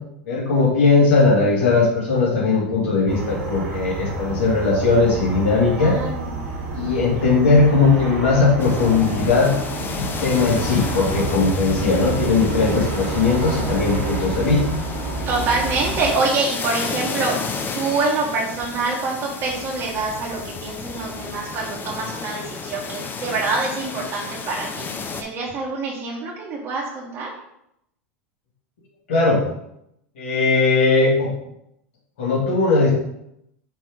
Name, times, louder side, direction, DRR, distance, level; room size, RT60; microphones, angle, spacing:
voice 1, 0.3-6.0 6.7-9.5 9.9-14.6 29.1-29.4 30.2-31.3 32.2-32.9, left 3 dB, 70° left, -3 dB, 2.4 m, -18 dB
sound 1, 3.1-16.1, right 3 dB, 60° right, 2.0 m, -29 dB
voice 2, 5.7-6.4 15.2-17.4 17.7-24.8 25.2-27.3, right 3 dB, 45° right, -5 dB, 1.7 m, -25 dB
sound 2, 8.6-25.2, left 5 dB, 30° left, 0.8 m, -32 dB
5.2 x 3.7 x 5.2 m, 0.79 s
hypercardioid pair, 90°, 7 cm